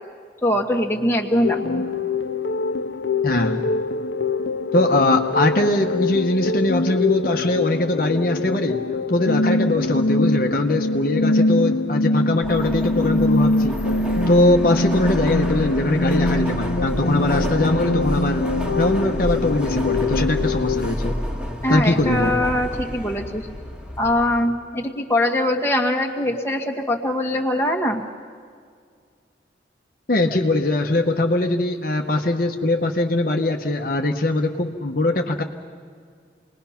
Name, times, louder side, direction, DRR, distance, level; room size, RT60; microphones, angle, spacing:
voice 1, 0.4-1.8 21.6-23.4 24.0-28.0, left 1 dB, 15° left, 0 dB, 1.5 m, -22 dB
sound 1, 1.4-20.9, left 2 dB, 80° left, 0.7 m, -23 dB
voice 2, 3.2-3.6 4.7-8.8 9.1-13.8 14.3-18.4 18.8-21.2 21.7-22.4 30.1-35.4, left 2 dB, 50° left, 3 dB, 1.0 m, -21 dB
Subway metro underground, 12.4-24.4, equal, 5° right, 1.9 m, -29 dB
28.0 x 20.5 x 5.8 m, 2.1 s
head